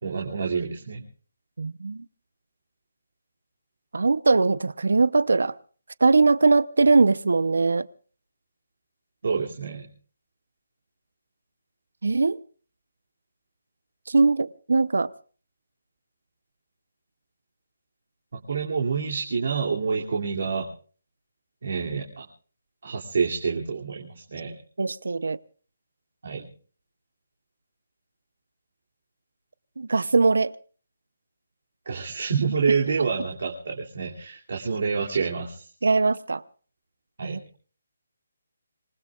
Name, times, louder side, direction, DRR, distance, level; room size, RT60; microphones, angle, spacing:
voice 1, 0.0-1.0 9.2-9.8 18.5-20.7 21.6-22.3 22.8-24.5 26.2-26.5 31.9-35.7 37.2-37.4, right 5 dB, 55° right, 2.7 m, -27 dB
voice 2, 1.6-2.0 3.9-5.5 6.0-7.9 12.0-12.4 14.1-15.1 24.8-25.4 29.8-30.5 35.8-36.4 37.2-37.6, right 3 dB, 90° right, 0.7 m, -21 dB
26.0 x 20.5 x 2.4 m
hypercardioid pair, 175°, 0 cm